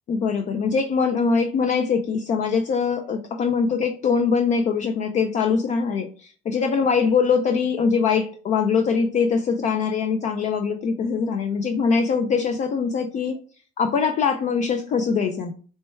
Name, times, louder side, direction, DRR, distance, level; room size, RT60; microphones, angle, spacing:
voice 1, 0.1-13.4 13.8-15.5, left 5 dB, 45° left, 5 dB, 0.4 m, -22 dB
4.3 x 2.2 x 4.3 m, 0.41 s
cardioid pair, 110°, 17 cm